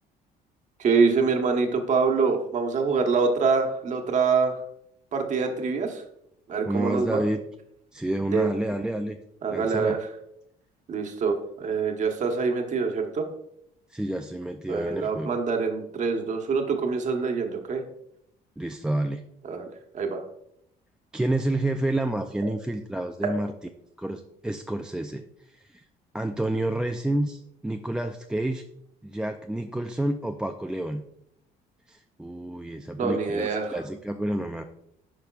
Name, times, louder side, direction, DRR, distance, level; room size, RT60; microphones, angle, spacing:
voice 1, 0.8-4.6 5.1-6.0 6.5-7.2 8.3-8.5 9.4-10.0 10.9-13.2 14.7-17.8 19.4-19.7 19.9-20.2 33.0-33.8, right 5 dB, 45° right, 3 dB, 1.2 m, -25 dB
voice 2, 6.7-7.4 7.9-9.2 9.5-10.0 13.9-15.3 18.6-19.2 21.1-23.5 24.0-25.2 25.5-25.8 26.1-28.6 29.0-31.1 31.9-34.6, right 1 dB, 5° right, 5 dB, 0.3 m, -29 dB
10.5 x 5.1 x 2.4 m, 0.76 s
cardioid pair, 110°, 17 cm